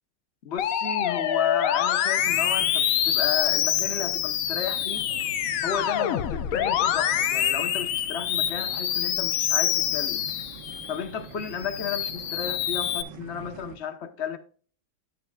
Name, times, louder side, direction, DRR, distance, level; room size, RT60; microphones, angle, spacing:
voice 1, 0.4-5.1 5.6-10.2 10.9-14.4, left 7 dB, 45° left, 1.0 m, -33 dB
Musical instrument, 0.6-11.0 11.5-13.0, left 10 dB, 70° left, 0.8 m, -26 dB
sound 1, 2.2-13.8, right 6 dB, 65° right, 1.6 m, -45 dB
9.7 x 9.0 x 2.3 m
omnidirectional pair, 2.1 m